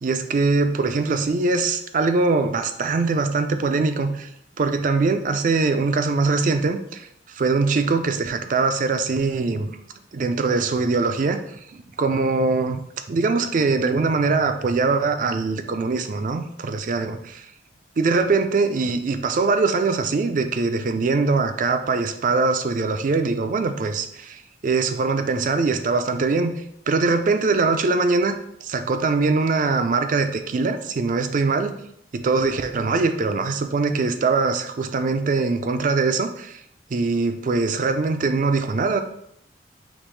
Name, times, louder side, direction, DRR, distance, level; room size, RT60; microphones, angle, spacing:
voice 1, 0.0-4.3 4.6-9.7 10.1-11.6 12.0-12.8 13.1-17.5 18.0-26.5 26.9-28.4 28.6-31.7 32.1-36.6 36.9-39.0, right 3 dB, 45° right, 8 dB, 0.4 m, -22 dB
5.1 x 3.0 x 3.2 m, 0.73 s
head